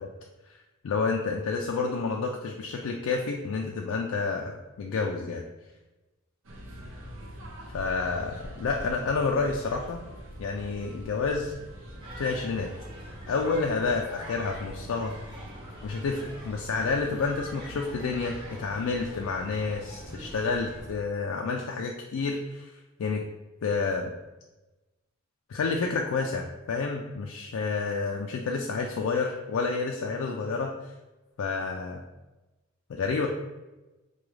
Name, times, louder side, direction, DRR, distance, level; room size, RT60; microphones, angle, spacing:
voice 1, 0.8-5.4 7.7-10.0 10.4-11.5 12.2-12.7 13.3-15.1 15.8-23.2 23.6-24.1 25.5-30.9 31.4-32.0 32.9-33.3, left 4 dB, 70° left, 1 dB, 0.3 m, -29 dB
sound 1, 6.4-20.9, equal, 60° right, 0.7 m, -44 dB
sound 2, 12.0-20.8, equal, 20° right, 0.7 m, -46 dB
4.9 x 2.3 x 3.1 m, 1.1 s
head